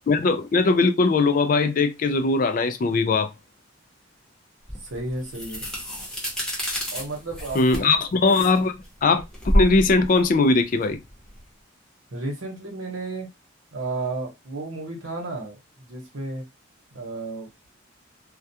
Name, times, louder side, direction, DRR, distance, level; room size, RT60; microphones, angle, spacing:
voice 1, 0.1-3.3 7.5-11.0, left 3 dB, 45° left, 0.3 m, -20 dB
sound 1, 4.7-11.4, equal, 5° left, 0.8 m, -29 dB
voice 2, 4.8-5.6 6.9-8.0 12.1-13.3 13.7-16.4 16.9-17.5, right 2 dB, 80° right, 0.9 m, -33 dB
2.3 x 2.2 x 2.7 m
head